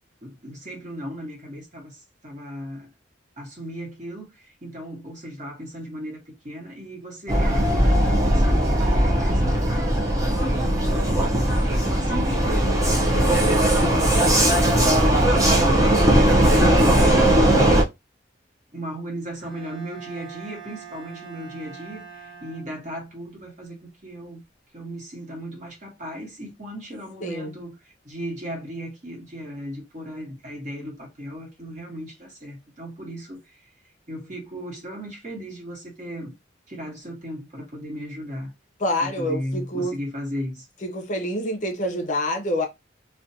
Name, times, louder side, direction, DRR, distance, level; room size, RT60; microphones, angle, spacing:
voice 1, 0.2-2.9 3.4-9.9 10.5-16.3 16.5-17.8 18.7-24.4 24.7-33.6 34.1-36.3 36.7-38.5 39.0-40.7, equal, 40° right, 1.0 m, -36 dB
Vehicle, 7.3-17.8, right 1 dB, 15° right, 0.4 m, -19 dB
Bowed string instrument, 19.4-23.1, right 6 dB, 85° right, 1.1 m, -43 dB
voice 2, 27.2-27.5 38.8-40.0 40.8-42.7, left 1 dB, 40° left, 0.5 m, -27 dB
2.5 x 2.2 x 2.6 m
head